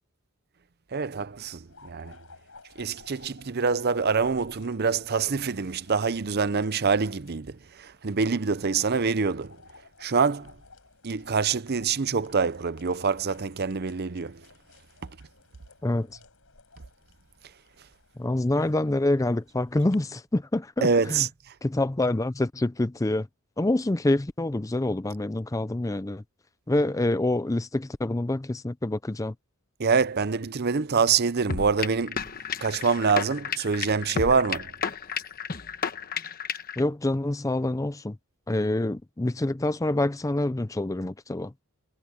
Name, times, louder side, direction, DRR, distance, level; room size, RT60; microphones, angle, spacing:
voice 1, 0.9-2.2 2.8-9.6 10.0-10.5 11.0-14.4 20.8-21.5 29.8-32.2 32.6-34.7, right 5 dB, 45° right, 0.6 m, -25 dB
sound 1, 1.0-20.0, left 4 dB, 65° left, 6.6 m, -56 dB
voice 2, 18.2-21.2 21.6-23.3 23.6-26.2 26.7-29.3 36.8-38.2 38.5-41.5, left 1 dB, 15° left, 0.5 m, -26 dB
sound 2, 31.5-36.8, left 6 dB, 40° left, 1.1 m, -32 dB
head